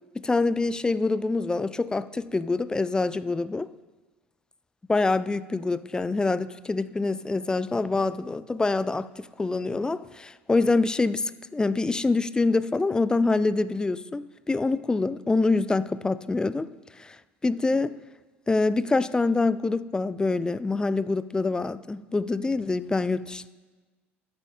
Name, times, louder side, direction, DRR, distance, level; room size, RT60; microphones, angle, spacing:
voice 1, 0.2-3.7 4.9-16.7 17.0-17.2 17.4-17.9 18.5-23.5, left 3 dB, 10° left, 16 dB, 0.4 m, -25 dB
13.0 x 11.0 x 2.8 m, 1.3 s
figure-of-eight pair, 65°, 7 cm